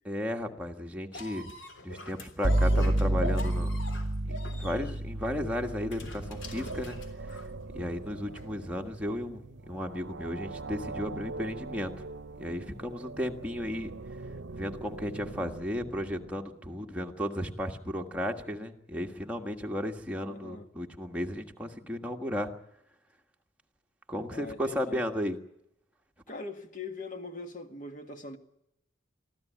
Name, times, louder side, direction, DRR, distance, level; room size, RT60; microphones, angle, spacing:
voice 1, 0.0-1.5 1.8-3.8 4.3-7.0 7.7-12.1 12.4-13.9 14.6-22.5 24.1-25.4, left 1 dB, 5° right, 1.6 m, -34 dB
sound 1, 1.1-7.6 8.4-8.5, equal, 65° left, 3.3 m, -42 dB
sound 2, 2.4-10.2, right 1 dB, 35° right, 0.9 m, -31 dB
sound 3, 5.7-16.8, right 3 dB, 75° right, 0.8 m, -43 dB
voice 2, 20.3-20.7 24.3-25.0 26.3-28.4, left 3 dB, 40° left, 1.9 m, -41 dB
24.0 x 14.5 x 9.3 m
head